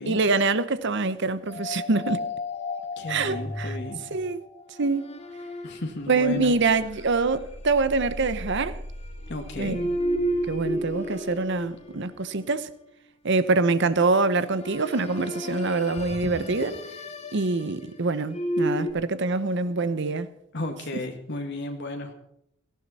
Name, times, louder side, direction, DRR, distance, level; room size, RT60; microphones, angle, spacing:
voice 1, 0.1-2.2 3.1-3.8 4.1-4.4 4.8-5.0 6.1-8.8 9.6-9.9 10.5-12.7 13.2-16.8 17.3-20.3, right 3 dB, 60° right, 0.9 m, -25 dB
sound 1, 1.5-12.6 14.1-18.9, equal, 35° left, 2.9 m, -33 dB
voice 2, 3.0-4.0 5.6-6.5 9.3-9.8 20.5-22.1, left 1 dB, 60° left, 1.8 m, -33 dB
18.0 x 14.5 x 4.2 m
head